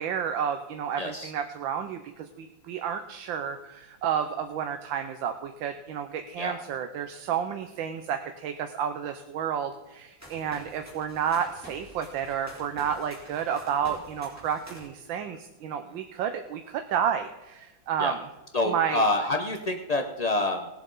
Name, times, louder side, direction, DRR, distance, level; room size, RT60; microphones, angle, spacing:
voice 1, 0.0-18.2 18.6-19.0, right 8 dB, 85° right, 7 dB, 1.5 m, -31 dB
voice 2, 1.0-1.3 6.4-6.5 18.0-18.1 18.5-20.7, left 2 dB, 75° left, 4 dB, 0.3 m, -27 dB
sound 1, 10.2-14.9, equal, 10° right, 3.4 m, -48 dB
19.0 x 7.9 x 3.9 m, 1.1 s
omnidirectional pair, 2.0 m